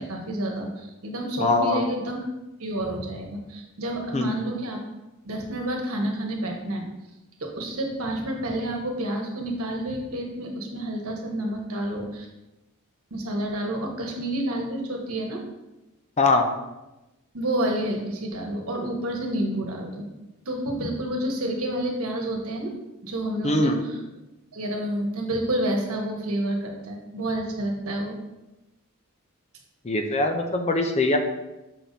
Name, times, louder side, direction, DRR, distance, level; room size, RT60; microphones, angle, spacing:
voice 1, 0.0-2.2 2.6-4.8 5.2-6.9 7.4-12.3 13.1-15.4 17.3-20.1 20.4-22.7 23.0-24.0 24.5-28.2, right 1 dB, 70° right, 1 dB, 1.3 m, -29 dB
voice 2, 1.4-1.8 4.1-4.3 16.2-16.5 23.4-23.8 29.8-31.2, left 2 dB, 30° left, 5 dB, 0.5 m, -22 dB
6.9 x 5.8 x 2.7 m, 1.0 s
head